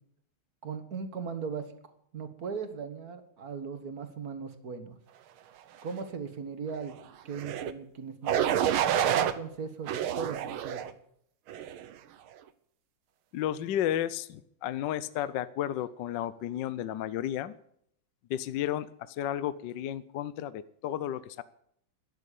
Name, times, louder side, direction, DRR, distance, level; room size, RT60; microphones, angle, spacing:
voice 1, 0.6-1.7 2.1-5.0 5.8-7.0 7.3-8.5 9.0-10.9, right 5 dB, 45° right, 9 dB, 2.0 m, -38 dB
sound 1, 7.3-7.7 8.3-9.3 9.9-10.9 11.5-11.9, right 10 dB, 85° right, 1.8 m, -28 dB
voice 2, 13.3-17.5 18.3-21.4, left 11 dB, 70° left, 16 dB, 1.2 m, -33 dB
12.5 x 10.5 x 8.3 m, 0.69 s
omnidirectional pair, 2.3 m